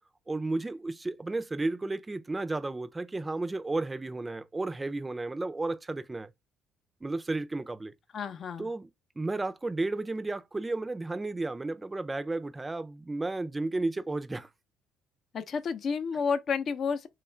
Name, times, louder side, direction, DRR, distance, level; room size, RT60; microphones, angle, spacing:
voice 1, 0.3-6.3 7.0-7.9 8.6-8.9 9.2-14.5, right 2 dB, 20° right, 0.5 m, -33 dB
voice 2, 8.1-8.7 15.3-17.1, left 5 dB, 50° left, 0.6 m, -30 dB
3.1 x 2.4 x 4.3 m
supercardioid pair, 70°, 0 cm